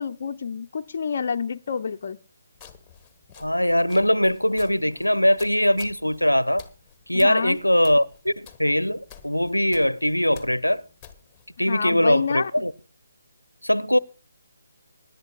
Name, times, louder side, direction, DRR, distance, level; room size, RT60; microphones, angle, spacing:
voice 1, 0.0-2.2 7.1-7.6 11.6-12.7, left 6 dB, 45° left, 0.6 m, -28 dB
sound 1, 2.5-11.6, left 7 dB, 10° left, 1.2 m, -50 dB
voice 2, 3.4-6.7 7.1-10.8 11.6-12.7 13.6-14.0, equal, 85° left, 0.6 m, -21 dB
25.0 x 11.0 x 2.3 m
figure-of-eight pair, 145°, 0 cm